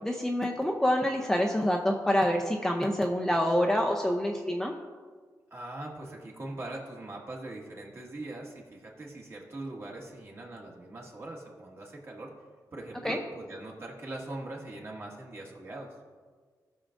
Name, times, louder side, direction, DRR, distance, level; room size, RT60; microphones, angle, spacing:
voice 1, 0.0-4.7 13.0-13.2, equal, 5° left, 1 dB, 0.5 m, -27 dB
voice 2, 5.5-12.3 12.7-15.9, right 2 dB, 35° right, -2 dB, 1.6 m, -41 dB
18.0 x 6.2 x 2.5 m, 1.5 s
wide cardioid pair, 175°, 7 cm